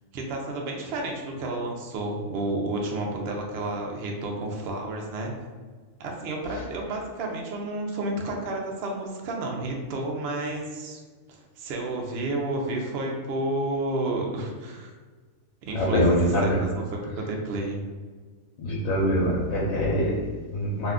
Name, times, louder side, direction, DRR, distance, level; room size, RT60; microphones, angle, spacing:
voice 1, 0.1-5.3 6.0-11.0 11.3-14.9 15.6-16.0 16.4-16.8 17.1-17.8, right 2 dB, 60° right, 1 dB, 0.7 m, -31 dB
voice 2, 15.7-16.8 17.1-17.2 18.6-20.9, equal, 90° left, -4 dB, 1.0 m, -24 dB
2.6 x 2.2 x 3.6 m, 1.4 s
omnidirectional pair, 1.4 m